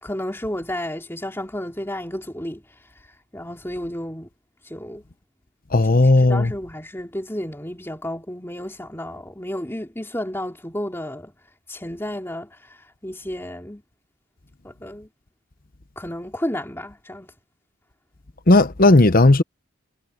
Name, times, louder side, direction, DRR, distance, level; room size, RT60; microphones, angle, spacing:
voice 1, 0.0-2.6 3.3-4.3 4.6-5.0 6.0-11.3 11.7-12.8 13.0-13.8 14.6-15.1 15.9-17.3, left 1 dB, 10° left, 3.3 m, -32 dB
voice 2, 5.7-6.5 18.5-19.4, left 2 dB, 40° left, 0.9 m, -14 dB
head